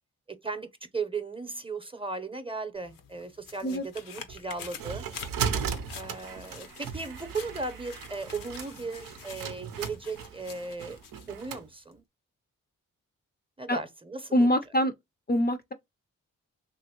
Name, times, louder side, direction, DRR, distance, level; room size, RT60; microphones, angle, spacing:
voice 1, 0.3-5.0 5.9-11.0 11.3-12.0 13.6-14.5, right 4 dB, 15° right, 0.7 m, -37 dB
sound 1, 2.7-11.5 11.9-12.0, left 7 dB, 75° left, 0.7 m, -47 dB
sound 2, 4.3-11.7, right 7 dB, 80° right, 0.6 m, -36 dB
voice 2, 14.3-14.9 15.3-15.7, equal, 30° left, 0.5 m, -24 dB
3.0 x 2.5 x 2.8 m
supercardioid pair, 45°, 33 cm